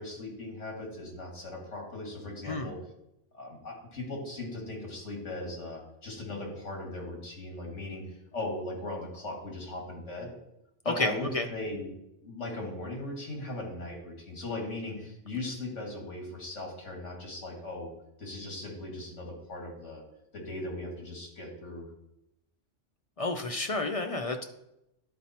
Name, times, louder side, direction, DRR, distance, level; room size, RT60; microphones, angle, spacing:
voice 1, 0.0-2.8 3.3-10.3 10.8-11.9 12.2-17.9 18.2-20.0 20.3-21.9, left 2 dB, 70° left, 0 dB, 2.3 m, -38 dB
voice 2, 10.8-11.5 23.2-24.4, left 2 dB, 50° left, 4 dB, 0.4 m, -30 dB
11.5 x 4.1 x 4.3 m, 0.85 s
omnidirectional pair, 1.3 m